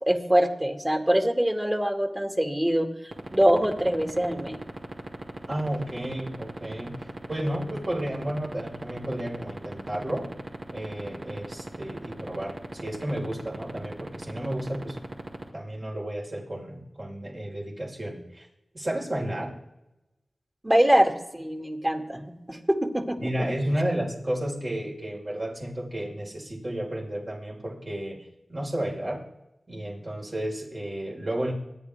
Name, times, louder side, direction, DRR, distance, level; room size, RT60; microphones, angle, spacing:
voice 1, 0.0-2.9 3.3-4.6 20.6-23.5, right 1 dB, 20° right, 3 dB, 2.5 m, -24 dB
sound 1, 3.1-15.4, right 2 dB, 60° right, 2.9 m, -35 dB
voice 2, 5.5-10.3 10.7-15.0 15.5-18.5 18.7-19.5 23.2-28.2 28.5-29.2 29.7-31.5, right 1 dB, 45° right, -2 dB, 5.0 m, -32 dB
25.5 x 10.5 x 3.6 m, 0.93 s
cardioid pair, 45°, 0 cm